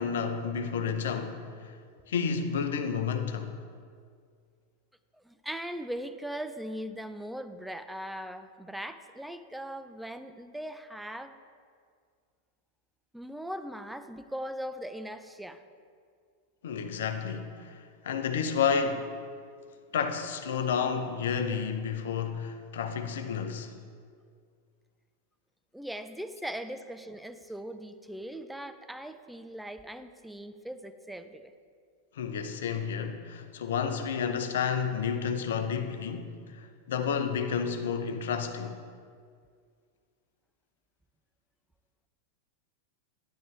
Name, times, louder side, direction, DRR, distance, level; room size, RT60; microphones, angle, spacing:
voice 1, 0.0-1.8 2.1-3.6 16.6-19.1 19.9-23.7 32.1-38.8, left 6 dB, 65° left, 0.8 m, -31 dB
voice 2, 5.2-11.3 13.1-15.6 25.7-31.5, equal, 5° right, 0.5 m, -39 dB
10.5 x 10.5 x 3.4 m
figure-of-eight pair, 90°, 0 cm